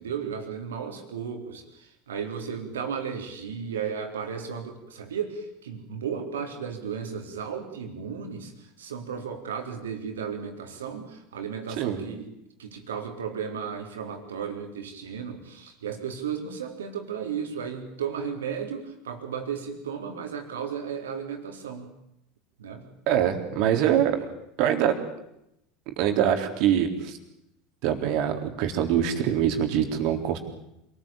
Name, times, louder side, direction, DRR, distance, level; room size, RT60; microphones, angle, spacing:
voice 1, 0.0-12.3 12.6-21.9 22.6-22.9 24.1-24.3, right 7 dB, 75° right, 5 dB, 4.2 m, -34 dB
voice 2, 23.1-24.2 24.6-25.0 26.0-27.2 27.8-30.4, right 10 dB, 55° right, 6 dB, 4.0 m, -24 dB
27.0 x 20.0 x 9.0 m, 0.82 s
figure-of-eight pair, 80°, 0 cm